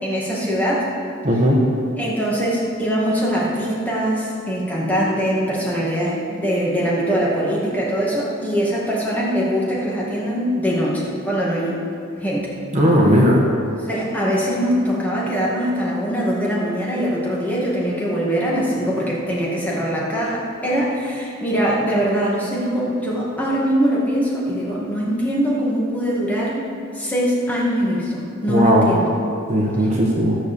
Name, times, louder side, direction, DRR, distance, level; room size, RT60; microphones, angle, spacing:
voice 1, 0.0-0.9 2.0-11.8 12.2-12.5 13.8-26.7 26.9-29.1 29.8-29.9, equal, 10° left, -6 dB, 2.2 m, -22 dB
voice 2, 1.2-1.6 12.7-13.4 28.5-28.9 29.5-30.4, equal, 35° right, -3 dB, 1.4 m, -16 dB
14.0 x 6.8 x 7.0 m, 2.5 s
head